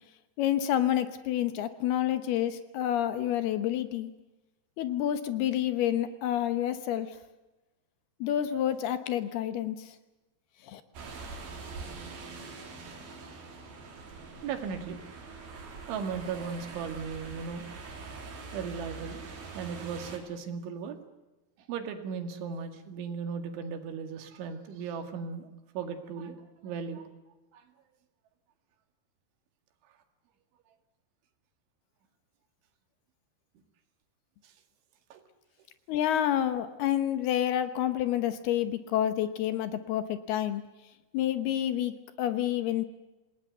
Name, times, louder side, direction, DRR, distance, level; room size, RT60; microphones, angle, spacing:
voice 1, 0.4-4.1 4.8-7.2 8.2-9.9 10.6-10.8 35.9-40.6 41.1-42.9, left 11 dB, 70° left, 11 dB, 2.7 m, -29 dB
sound 1, 10.9-20.2, right 4 dB, 55° right, 5.2 m, -43 dB
voice 2, 14.4-15.0 15.9-17.7 18.5-19.2 19.5-21.0 21.6-26.4 26.6-27.1 27.5-27.7 34.4-34.5 35.1-35.2, right 6 dB, 90° right, 7 dB, 4.5 m, -37 dB
27.5 x 18.5 x 8.0 m, 1.1 s
omnidirectional pair, 5.3 m